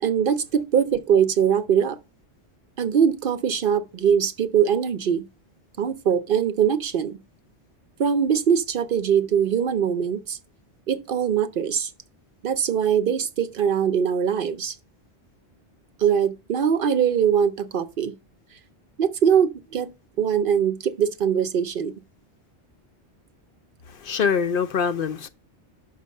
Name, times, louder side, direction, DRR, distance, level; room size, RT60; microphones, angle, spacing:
voice 1, 0.0-2.0 2.8-5.3 5.8-7.2 8.0-10.4 10.9-11.9 12.4-14.7 16.0-18.1 19.0-19.9 20.2-21.9, right 8 dB, 60° right, 0.7 m, -22 dB
voice 2, 24.0-25.3, left 6 dB, 60° left, 0.7 m, -24 dB
5.8 x 5.4 x 6.3 m
omnidirectional pair, 1.1 m